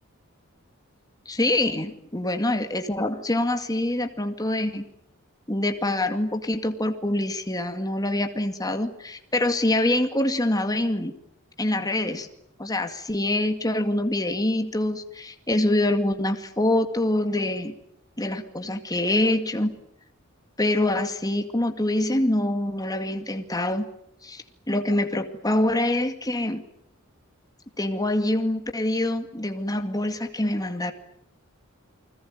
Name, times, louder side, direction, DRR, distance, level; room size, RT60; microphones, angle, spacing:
voice 1, 1.3-4.8 5.5-11.2 11.6-12.3 12.6-17.7 18.2-19.7 20.6-23.9 24.2-26.6 27.8-30.9, left 1 dB, 20° left, 6 dB, 2.2 m, -25 dB
30.0 x 21.0 x 9.5 m, 0.76 s
head